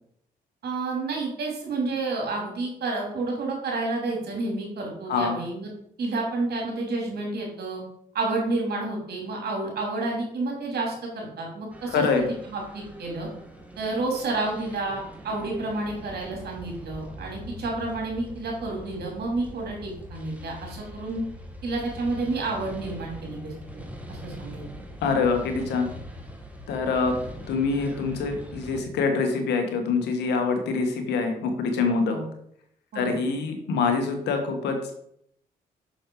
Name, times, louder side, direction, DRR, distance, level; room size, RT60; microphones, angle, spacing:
voice 1, 0.6-5.7 6.0-7.8 8.1-13.3 13.8-21.2 21.6-23.8 24.1-24.6 32.1-32.2 32.9-33.1, right 3 dB, 70° right, -1 dB, 3.1 m, -30 dB
sound 1, 11.7-28.8, equal, 10° right, 1.9 m, -42 dB
voice 2, 11.9-12.3 25.0-25.9 26.7-27.1 27.5-32.2 32.9-34.9, left 4 dB, 85° left, 5 dB, 1.5 m, -25 dB
6.5 x 6.4 x 4.8 m, 0.72 s
supercardioid pair, 55°, 17 cm